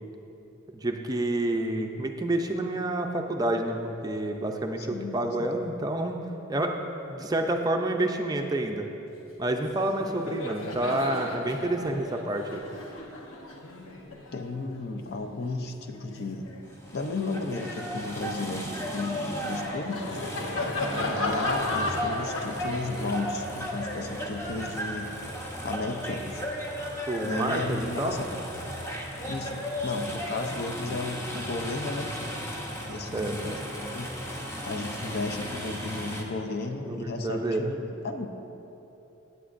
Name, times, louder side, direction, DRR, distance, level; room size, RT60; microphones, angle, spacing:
voice 1, 0.7-6.2 6.5-6.8 7.1-8.9 9.4-12.6 27.1-28.2 33.1-33.5 36.8-37.7, right 1 dB, 20° right, 3 dB, 0.5 m, -29 dB
voice 2, 4.8-5.7 14.3-16.5 16.9-20.2 21.0-25.1 25.6-26.5 27.2-28.3 29.2-32.3 32.9-34.2 34.7-38.3, left 3 dB, 50° left, 5 dB, 0.6 m, -34 dB
Laughter, 9.5-9.7 9.9-16.7 17.2-25.4, left 2 dB, 75° left, 0.9 m, -36 dB
sound 1, 16.7-36.2, equal, 15° left, 0.8 m, -35 dB
16.5 x 7.9 x 2.6 m, 3.0 s
head